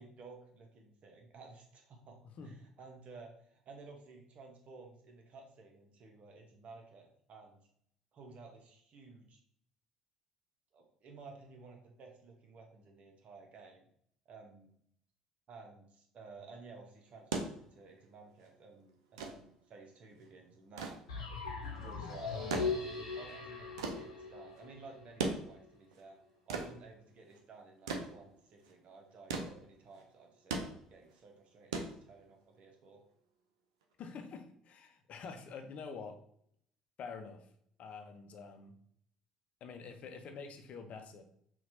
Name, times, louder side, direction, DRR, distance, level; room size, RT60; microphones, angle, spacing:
voice 1, 0.0-7.6 8.1-9.4 10.7-13.8 14.3-14.7 15.5-21.0 21.8-26.2 26.5-33.0, right 3 dB, 50° right, 2 dB, 1.0 m, -54 dB
sound 1, 17.1-32.6 33.8-33.9, right 4 dB, 75° right, 0.5 m, -41 dB
sound 2, 21.1-25.0, left 4 dB, 80° left, 0.8 m, -39 dB
voice 2, 34.0-36.2 37.0-37.5 37.8-38.7 39.6-41.2, left 5 dB, 50° left, 7 dB, 0.6 m, -47 dB
5.8 x 2.5 x 2.7 m, 0.66 s
figure-of-eight pair, 55°, 3 cm